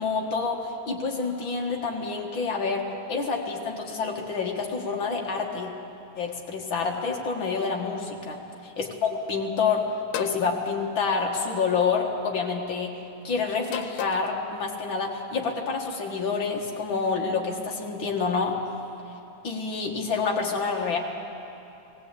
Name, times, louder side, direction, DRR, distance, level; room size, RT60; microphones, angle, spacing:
voice 1, 0.0-5.7 6.2-9.8 10.2-12.9 13.2-18.6 19.4-21.0, left 5 dB, 45° left, 0 dB, 2.0 m, -28 dB
sound 1, 10.1-10.5 11.7-12.0 13.6-14.3, left 11 dB, 85° left, 2.2 m, -34 dB
19.0 x 16.5 x 8.4 m, 2.9 s
omnidirectional pair, 3.6 m